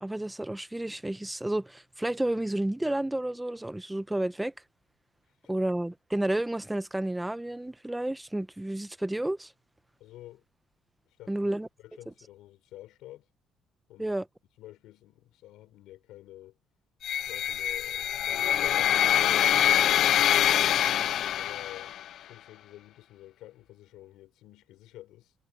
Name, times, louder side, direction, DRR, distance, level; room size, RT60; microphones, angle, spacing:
voice 1, 0.0-4.5 5.5-9.5 11.3-11.7 14.0-14.3, right 1 dB, 5° right, 0.6 m, -31 dB
voice 2, 10.0-10.5 11.0-11.4 11.8-13.3 13.9-14.2 14.6-16.6 17.3-20.7 21.3-25.3, left 15 dB, 90° left, 4.6 m, -50 dB
sound 1, 17.0-22.1, left 11 dB, 55° left, 0.6 m, -24 dB
cardioid pair, 165°, 0 cm